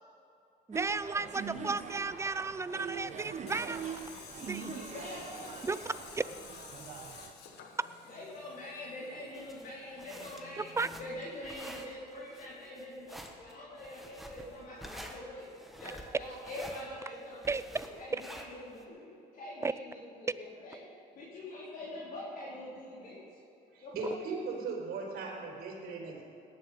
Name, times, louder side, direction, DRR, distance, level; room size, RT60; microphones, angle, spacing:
voice 1, 0.7-3.9 4.4-4.7 5.6-6.2 10.6-10.9 17.5-17.6 19.6-19.7, right 4 dB, 15° right, 15 dB, 0.4 m, -34 dB
sound 1, 0.7-7.3, right 6 dB, 45° right, 1.1 m, -43 dB
Tools, 3.5-11.3, left 7 dB, 75° left, 1.6 m, -52 dB
voice 2, 4.7-5.6 8.1-15.5 15.8-20.8 21.1-23.2 23.8-24.2, left 1 dB, 55° left, -8 dB, 4.4 m, -44 dB
sound 2, 9.3-18.8, equal, ahead, 1.6 m, -49 dB
voice 3, 23.7-26.2, right 4 dB, 65° right, -1 dB, 4.2 m, -38 dB
18.0 x 10.5 x 5.4 m, 2.7 s
cardioid pair, 110°, 17 cm